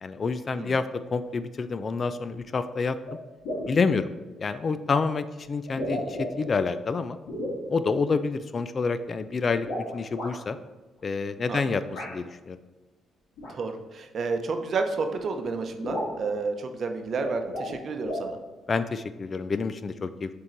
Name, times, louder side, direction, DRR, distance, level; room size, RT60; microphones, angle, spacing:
voice 1, 0.0-3.0 3.7-4.1 4.4-7.2 7.7-9.7 9.9-10.6 11.0-12.6 18.7-20.3, left 4 dB, 40° left, 12 dB, 0.3 m, -28 dB
sound 1, 3.0-3.2 3.4-3.8 4.9-5.0 5.7-6.6 7.3-7.6 9.6-10.3 11.9-12.1 13.4-13.5 14.7-14.8 15.2-15.3 15.5-15.6 15.8-16.2 17.0-17.8 18.0-18.3, left 1 dB, 90° left, 2.1 m, -33 dB
voice 2, 13.5-18.4, right 4 dB, 55° right, 6 dB, 0.7 m, -31 dB
6.6 x 3.7 x 4.5 m, 1.2 s
cardioid pair, 90°, 0 cm